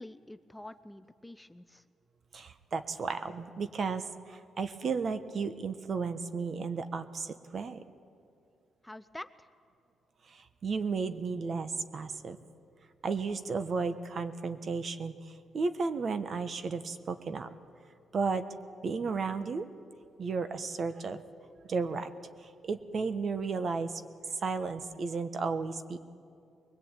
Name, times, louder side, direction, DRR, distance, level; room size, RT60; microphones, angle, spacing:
voice 1, 0.0-1.8 8.8-9.5, left 1 dB, 10° left, 11 dB, 0.5 m, -47 dB
voice 2, 2.3-7.8 10.3-12.4 13.0-17.5 18.1-18.4 18.8-19.7 20.2-21.2 21.6-26.0, right 4 dB, 45° right, 10 dB, 1.2 m, -34 dB
22.5 x 21.0 x 9.1 m, 2.4 s
cardioid pair, 115°, 0 cm